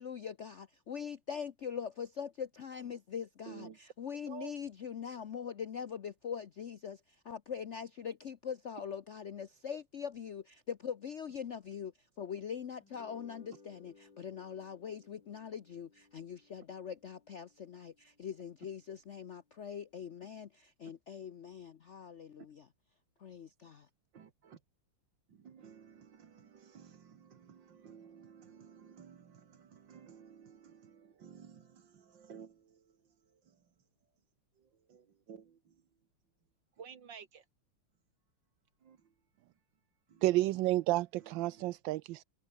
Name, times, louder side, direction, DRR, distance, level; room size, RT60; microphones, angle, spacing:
voice 1, 0.0-11.9 12.2-22.6 23.2-23.9, left 7 dB, 85° left, 0.6 m, -42 dB
voice 2, 3.5-3.8 4.3-4.5 24.1-24.6 25.3-33.7 34.6-35.9 36.8-37.4 38.8-39.1 40.1-40.2 41.2-41.6, right 7 dB, 60° right, 2.2 m, -54 dB
sound 1, 12.8-19.3, left 4 dB, 60° left, 4.3 m, -62 dB
voice 3, 40.2-42.2, right 17 dB, 75° right, 1.2 m, -30 dB
omnidirectional pair, 2.4 m